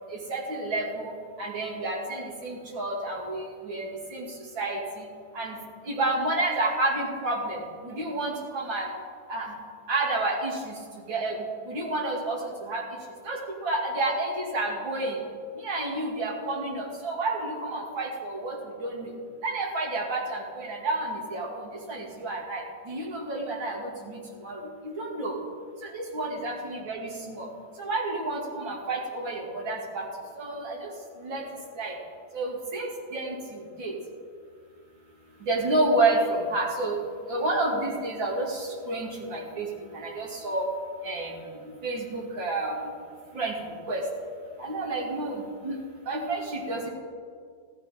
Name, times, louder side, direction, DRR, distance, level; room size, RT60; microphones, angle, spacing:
voice 1, 0.1-1.1 1.4-4.3 4.5-4.8 5.3-5.5 5.9-7.6 7.8-8.9 9.3-9.5 9.9-10.7 11.1-11.3 11.7-12.8 13.3-15.2 15.6-18.6 18.8-19.1 19.4-21.6 21.9-22.6 22.9-24.2 24.4-24.6 25.0-25.4 25.9-27.5 27.8-30.0 30.4-30.8 31.2-31.4 31.8-31.9 32.3-33.9 35.5-37.0 37.3-39.7 40.0-40.6 41.0-41.3 41.8-42.7 43.3-43.5 43.9-44.0 44.6-45.7 46.1-46.9, right 2 dB, 85° right, -2 dB, 3.2 m, -29 dB
16.0 x 13.0 x 5.2 m, 2.1 s
omnidirectional pair, 2.1 m